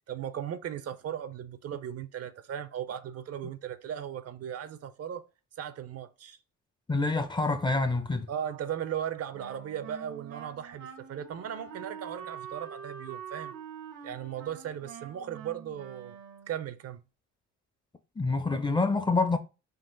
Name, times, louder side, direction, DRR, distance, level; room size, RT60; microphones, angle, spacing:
voice 1, 0.1-5.2 5.6-6.4 8.3-13.5 14.0-16.2 16.5-17.0, right 9 dB, 55° right, 0.5 m, -37 dB
voice 2, 6.9-8.3 18.2-19.4, left 3 dB, 15° left, 0.4 m, -26 dB
Wind instrument woodwind instrument, 9.3-16.7, right 7 dB, 75° right, 0.8 m, -45 dB
3.8 x 2.4 x 3.8 m
cardioid pair, 90°, 30 cm